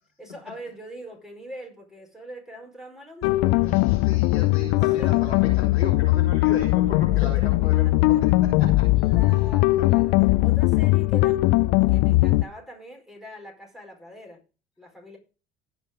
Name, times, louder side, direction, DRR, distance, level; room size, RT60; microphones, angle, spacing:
voice 1, 0.2-3.9 4.8-5.3 7.2-8.0 8.9-11.4 11.9-14.4 14.8-15.2, equal, ahead, 4.8 m, -42 dB
sound 1, 3.2-12.4, left 19 dB, 60° left, 0.6 m, -20 dB
voice 2, 3.6-8.8 9.3-9.4, left 4 dB, 90° left, 3.3 m, -36 dB
15.5 x 5.1 x 5.1 m
figure-of-eight pair, 55°, 31 cm